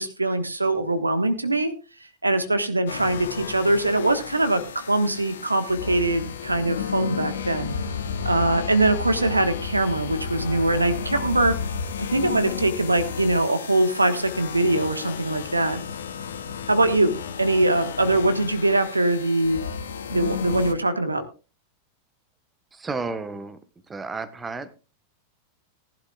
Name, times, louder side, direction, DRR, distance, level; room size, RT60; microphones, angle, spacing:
voice 1, 0.0-1.7 2.2-7.8 8.2-11.5 12.0-15.8 16.7-19.6 20.1-21.2, right 2 dB, 80° right, 9 dB, 1.4 m, -22 dB
sound 1, 2.9-20.7, left 6 dB, 65° left, 1.1 m, -33 dB
voice 2, 22.7-23.6 23.9-24.7, right 4 dB, 15° right, 11 dB, 1.2 m, -32 dB
18.5 x 11.5 x 2.4 m, 0.32 s
figure-of-eight pair, 90°, 0 cm